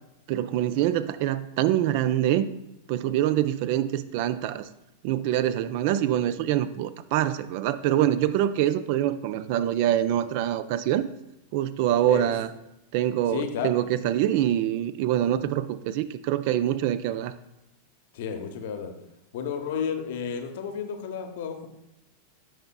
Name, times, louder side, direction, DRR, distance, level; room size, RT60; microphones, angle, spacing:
voice 1, 0.3-2.5 2.9-4.7 5.0-11.1 11.5-12.5 12.9-17.3, right 12 dB, 45° right, 13 dB, 0.3 m, -25 dB
voice 2, 13.3-13.7 18.1-18.9 19.3-21.7, left 7 dB, 55° left, 6 dB, 0.8 m, -32 dB
9.0 x 5.7 x 2.3 m, 0.88 s
figure-of-eight pair, 90°, 0 cm